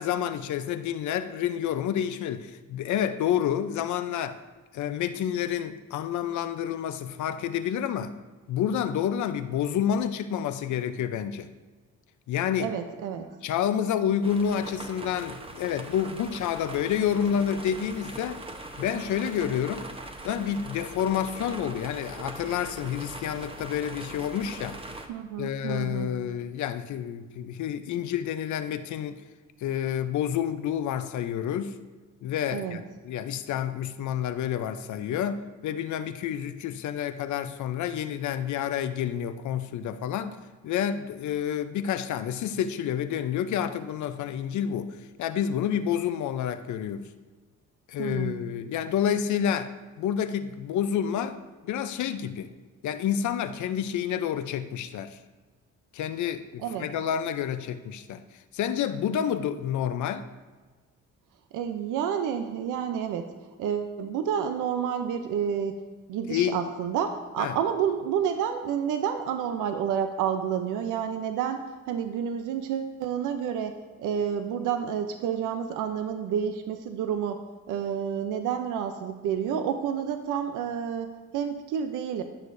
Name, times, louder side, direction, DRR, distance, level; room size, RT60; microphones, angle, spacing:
voice 1, 0.0-4.4 4.7-8.1 8.5-11.5 12.3-12.7 13.4-18.4 18.8-19.9 20.2-24.8 25.4-29.2 29.6-31.8 32.2-40.4 40.6-47.1 47.9-51.4 51.6-52.5 52.8-55.2 55.9-58.2 58.5-60.2 66.3-66.6 67.4-67.6, left 9 dB, 75° left, 11 dB, 0.6 m, -29 dB
voice 2, 12.6-13.3 25.1-26.1 32.5-32.8 48.0-48.4 56.6-56.9 61.5-63.3 63.6-65.8 66.1-77.4 77.7-82.2, right 8 dB, 85° right, 7 dB, 0.6 m, -29 dB
sound 1, 14.2-25.1, right 2 dB, 20° right, 0.9 m, -41 dB
14.5 x 6.5 x 2.6 m, 1.3 s
cardioid pair, 90°, 30 cm